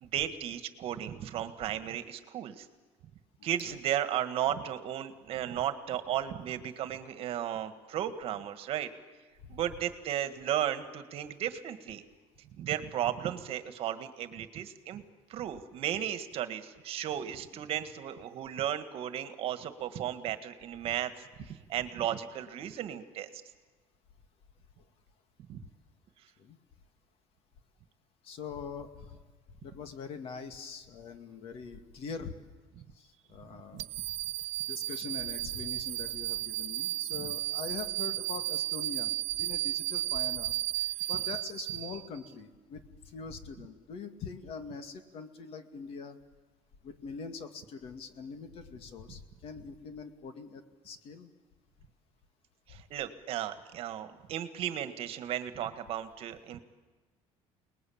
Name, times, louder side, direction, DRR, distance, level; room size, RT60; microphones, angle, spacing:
voice 1, 0.0-2.7 3.4-8.9 9.5-12.0 12.6-15.0 15.3-21.1 21.4-23.4 25.5-25.6 33.7-33.8 37.2-37.3 52.7-56.6, right 11 dB, 55° right, 10 dB, 1.8 m, -35 dB
voice 2, 28.2-29.2 29.6-32.3 32.9-33.9 34.6-40.6 41.1-46.2 46.8-51.3, left 5 dB, 55° left, 8 dB, 2.2 m, -43 dB
sound 1, 33.8-42.3, right 17 dB, 70° right, 1.4 m, -34 dB
29.0 x 20.5 x 8.8 m, 1.3 s
cardioid pair, 150°, 12 cm